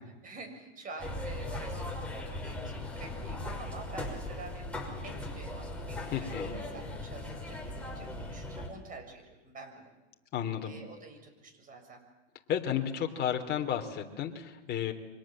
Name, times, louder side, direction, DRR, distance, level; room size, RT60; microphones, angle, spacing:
voice 1, 0.2-9.9 10.6-12.0, right 3 dB, 25° right, 4 dB, 6.9 m, -48 dB
sound 1, 1.0-8.7, left 1 dB, 5° left, 5.6 m, -38 dB
voice 2, 6.1-6.6 10.3-10.7 12.5-14.9, left 9 dB, 30° left, 5 dB, 3.3 m, -32 dB
29.5 x 25.0 x 7.6 m, 1.1 s
hypercardioid pair, 125°, 35 cm